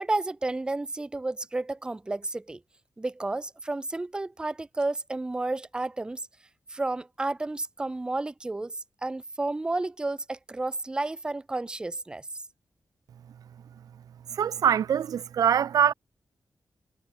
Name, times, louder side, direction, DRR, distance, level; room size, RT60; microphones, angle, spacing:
voice 1, 0.0-2.6 3.0-6.2 6.7-8.8 9.0-12.2, right 2 dB, 15° right, 0.5 m, -31 dB
voice 2, 14.3-15.9, right 8 dB, 80° right, 0.6 m, -23 dB
wide cardioid pair, 140°, 6 cm